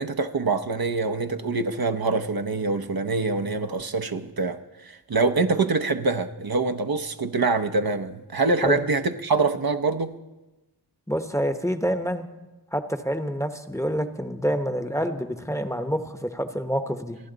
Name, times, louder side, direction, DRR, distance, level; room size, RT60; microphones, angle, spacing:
voice 1, 0.0-10.1, right 3 dB, 60° right, 7 dB, 0.9 m, -25 dB
voice 2, 11.1-12.3 12.7-17.2, equal, 5° left, 7 dB, 1.0 m, -27 dB
28.5 x 10.5 x 4.0 m, 1.1 s
wide cardioid pair, 50°, 40 cm